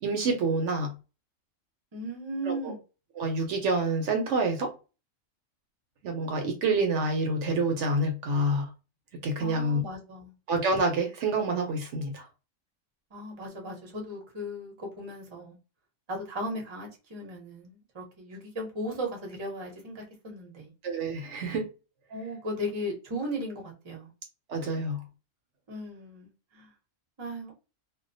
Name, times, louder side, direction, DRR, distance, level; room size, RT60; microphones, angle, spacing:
voice 1, 0.0-0.9 2.5-2.7 3.2-4.7 6.0-8.7 9.2-9.8 10.5-12.2 20.8-21.7 24.5-25.0, right 2 dB, 70° right, 0.9 m, -27 dB
voice 2, 1.9-2.8 9.4-10.3 13.1-15.6 16.1-20.7 22.1-24.1 25.7-26.7 27.2-27.5, equal, 30° right, 0.7 m, -36 dB
2.3 x 2.1 x 2.5 m
omnidirectional pair, 1.3 m